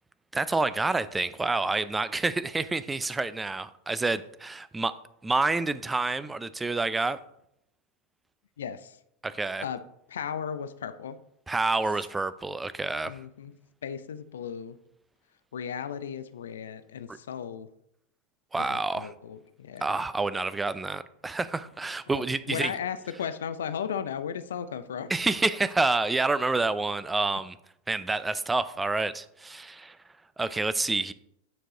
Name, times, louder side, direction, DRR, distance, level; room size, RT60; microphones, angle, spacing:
voice 1, 0.3-4.9 5.2-7.2 9.2-9.7 11.5-13.2 17.1-17.2 18.5-19.1 19.8-22.7 25.1-27.6 27.9-30.0 30.4-31.1, right 3 dB, 10° right, 0.5 m, -28 dB
voice 2, 8.6-9.0 9.6-11.2 13.1-13.5 13.8-14.8 15.5-17.7 18.7-20.0 22.1-25.1, left 7 dB, 75° left, 0.5 m, -36 dB
9.0 x 4.7 x 3.8 m
figure-of-eight pair, 90°, 0 cm